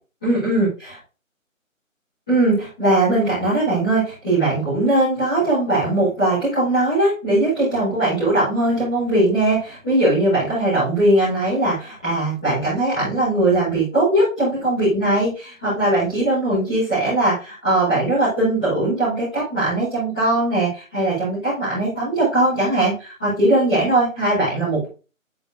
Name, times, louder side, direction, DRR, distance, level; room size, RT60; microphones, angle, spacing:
voice 1, 0.2-0.9 2.3-24.9, right 2 dB, 5° left, -22 dB, 1.7 m, -20 dB
11.5 x 4.4 x 2.7 m, 0.34 s
figure-of-eight pair, 175°, 41 cm